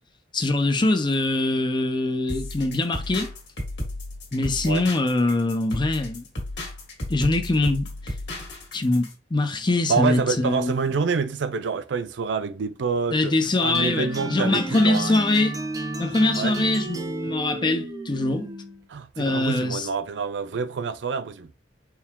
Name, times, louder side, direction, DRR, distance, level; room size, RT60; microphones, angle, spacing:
voice 1, 0.3-3.3 4.3-6.2 7.1-8.1 8.7-10.8 13.1-15.5 16.0-18.5 19.2-19.9, left 2 dB, 25° left, 0.6 m, -23 dB
sound 1, 2.3-9.1, left 1 dB, 85° left, 1.7 m, -34 dB
voice 2, 9.9-13.4 13.6-15.2 16.4-16.6 18.9-21.5, right 5 dB, 85° right, 0.4 m, -27 dB
sound 2, 13.7-18.9, right 1 dB, 20° right, 0.5 m, -33 dB
4.6 x 2.2 x 3.6 m
head